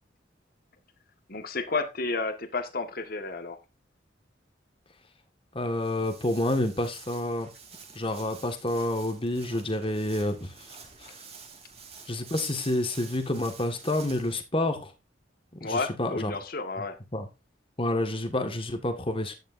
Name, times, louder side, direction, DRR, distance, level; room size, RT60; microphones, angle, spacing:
voice 1, 1.3-3.6 15.6-17.0, left 3 dB, 50° left, 1.7 m, -31 dB
voice 2, 5.5-7.5 7.9-11.2 12.1-14.9 15.6-16.3 17.1-17.3 17.8-19.3, left 1 dB, 30° left, 1.8 m, -29 dB
Walk footsteps, 5.6-14.3, right 5 dB, 30° right, 3.3 m, -48 dB
11.5 x 10.5 x 2.7 m
head